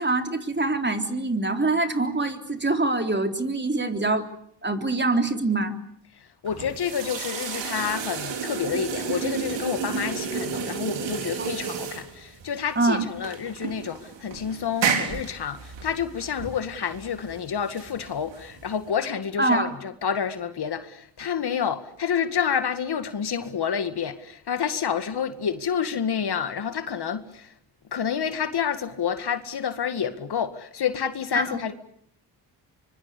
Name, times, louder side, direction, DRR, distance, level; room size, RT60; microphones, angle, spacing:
voice 1, 0.0-4.3 4.6-5.8 11.4-11.5 12.8-13.1 19.4-19.7 31.3-31.6, right 2 dB, 25° right, 4.0 m, -24 dB
voice 2, 6.1-27.5 27.9-31.7, left 7 dB, 60° left, 2.0 m, -29 dB
sound 1, 6.5-18.9, right 6 dB, 80° right, 4.1 m, -32 dB
25.0 x 23.5 x 8.4 m
supercardioid pair, 50°, 44 cm